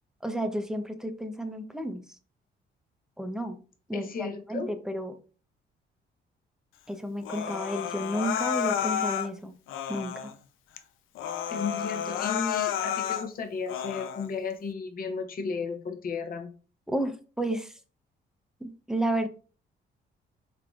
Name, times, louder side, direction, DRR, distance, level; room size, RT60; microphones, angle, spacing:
voice 1, 0.2-2.0 3.2-3.6 3.9-5.2 6.9-9.5 9.9-10.3 16.9-17.8 18.6-19.3, right 1 dB, 5° right, 8 dB, 0.5 m, -32 dB
voice 2, 3.9-4.7 11.5-16.5, left 5 dB, 45° left, 5 dB, 0.8 m, -34 dB
Human voice, 7.2-9.3 9.7-10.3 10.8-10.9 11.2-13.3 13.7-14.3, left 9 dB, 85° left, 0.5 m, -31 dB
3.8 x 3.4 x 2.4 m, 0.38 s
cardioid pair, 90°, 20 cm